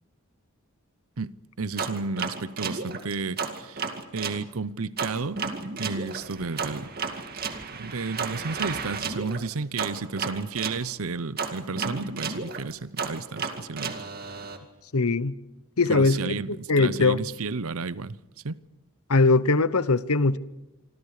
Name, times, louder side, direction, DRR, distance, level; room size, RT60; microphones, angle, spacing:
voice 1, 1.2-3.9 4.1-5.4 5.8-6.9 7.7-14.4 15.9-18.2 18.4-18.6, right 4 dB, 70° right, 0.8 m, -32 dB
sound 1, 1.8-4.4 5.0-10.8 11.4-14.6, right 5 dB, 45° right, 2.3 m, -33 dB
voice 2, 14.9-15.4 15.8-16.3 16.7-17.2 19.1-20.4, left 3 dB, 80° left, 1.0 m, -21 dB
26.5 x 26.0 x 5.0 m
head